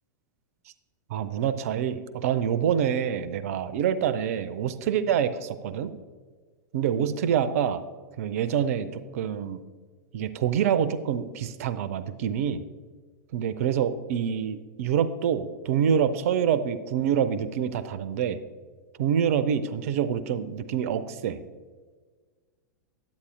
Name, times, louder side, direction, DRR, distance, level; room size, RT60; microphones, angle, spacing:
voice 1, 1.1-6.0 6.7-7.8 8.2-9.6 10.1-12.6 13.3-18.4 19.0-21.4, right 8 dB, 50° right, 14 dB, 0.5 m, -26 dB
9.7 x 8.4 x 3.2 m, 1.5 s
figure-of-eight pair, 100°, 10 cm